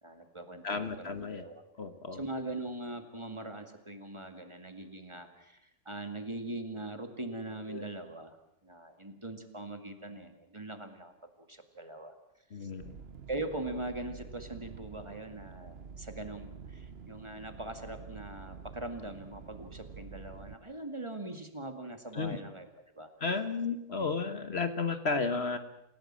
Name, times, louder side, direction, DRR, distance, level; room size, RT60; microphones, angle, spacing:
voice 1, 0.0-1.6 2.1-8.4 8.6-12.2 12.6-12.7 13.3-22.7 23.0-23.1, right 2 dB, 20° right, 6 dB, 2.1 m, -41 dB
voice 2, 0.6-1.4 1.8-2.2 7.7-7.8 12.5-13.0 22.1-22.4 23.2-25.6, left 4 dB, 50° left, 9 dB, 1.5 m, -33 dB
sound 1, 12.8-20.5, right 5 dB, 50° right, 1.2 m, -48 dB
28.5 x 16.5 x 7.5 m, 0.86 s
omnidirectional pair, 1.4 m